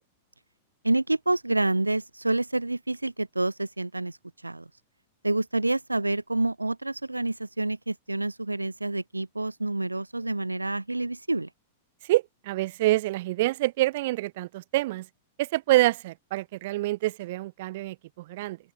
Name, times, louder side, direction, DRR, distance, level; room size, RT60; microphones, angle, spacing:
voice 1, 0.8-4.2 4.4-4.7 5.2-11.5, right 2 dB, 90° right, 2.3 m, -28 dB
voice 2, 12.0-15.1 15.4-18.6, right 17 dB, 50° right, 2.2 m, -26 dB
open air
figure-of-eight pair, 100°, 0 cm